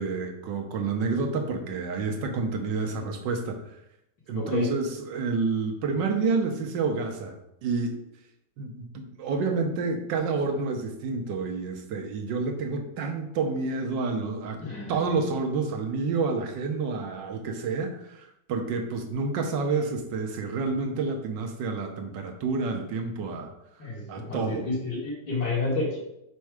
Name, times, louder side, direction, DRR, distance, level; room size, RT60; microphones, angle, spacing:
voice 1, 0.0-3.6 4.3-7.4 7.6-8.0 8.6-14.6 14.9-23.5 24.1-24.7, right 4 dB, 80° right, 4 dB, 1.5 m, -29 dB
voice 2, 4.3-4.7 14.6-14.9 23.8-26.0, left 3 dB, 75° left, -3 dB, 2.5 m, -30 dB
5.4 x 4.6 x 4.7 m, 0.84 s
omnidirectional pair, 1.9 m